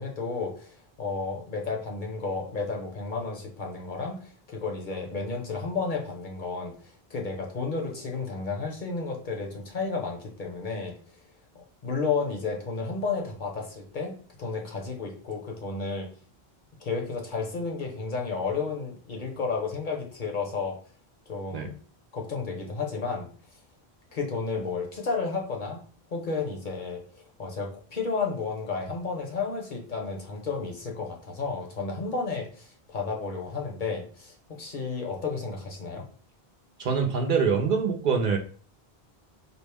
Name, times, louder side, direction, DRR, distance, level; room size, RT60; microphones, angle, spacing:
voice 1, 0.0-10.9 11.5-16.1 16.8-20.8 21.3-21.7 22.1-23.3 24.1-25.8 26.1-27.0 27.4-36.0, left 4 dB, 55° left, 1 dB, 0.9 m, -32 dB
voice 2, 36.8-38.4, right 5 dB, 60° right, 3 dB, 0.6 m, -24 dB
4.3 x 2.0 x 3.3 m, 0.42 s
omnidirectional pair, 1.1 m